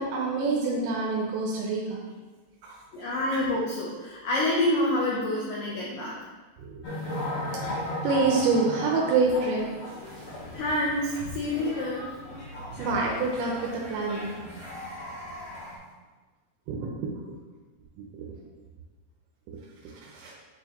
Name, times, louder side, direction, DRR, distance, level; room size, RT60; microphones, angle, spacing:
voice 1, 0.0-2.0 2.6-2.8 3.3-3.4 6.6-6.8 7.7-9.6 12.7-14.4 16.7-17.1 18.1-18.3 20.0-20.4, right 3 dB, 80° right, -2 dB, 2.9 m, -27 dB
voice 2, 2.9-6.2 9.4-9.5 10.5-12.1, left 1 dB, 80° left, -4 dB, 2.0 m, -27 dB
sound 1, 6.8-15.8, left 1 dB, 45° left, 1.7 m, -36 dB
9.0 x 4.5 x 2.9 m, 1.3 s
omnidirectional pair, 5.1 m